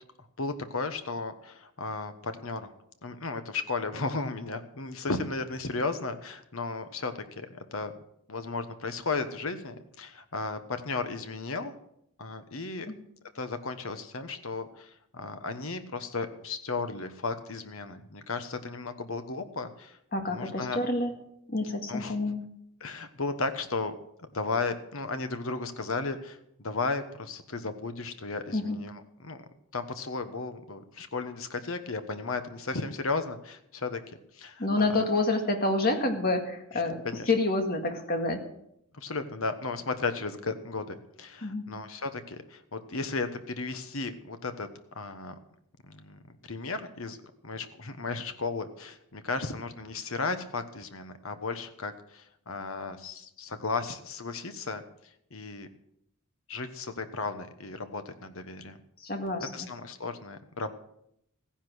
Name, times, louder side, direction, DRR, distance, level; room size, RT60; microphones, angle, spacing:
voice 1, 0.4-2.7 3.0-7.9 8.3-11.7 12.2-12.9 13.3-20.0 20.3-20.8 21.9-22.1 22.8-24.0 24.3-29.4 29.7-34.0 34.3-34.7 36.7-37.3 38.9-44.7 44.9-45.3 45.9-47.2 47.4-54.8 55.3-55.7 56.5-58.8 59.5-60.7, left 3 dB, 65° left, 9 dB, 1.2 m, -35 dB
voice 2, 20.1-21.1 21.5-22.4 28.5-28.8 34.6-38.4 41.4-41.6 59.0-59.5, left 2 dB, 45° left, 4 dB, 2.0 m, -28 dB
15.0 x 10.5 x 6.3 m, 0.76 s
head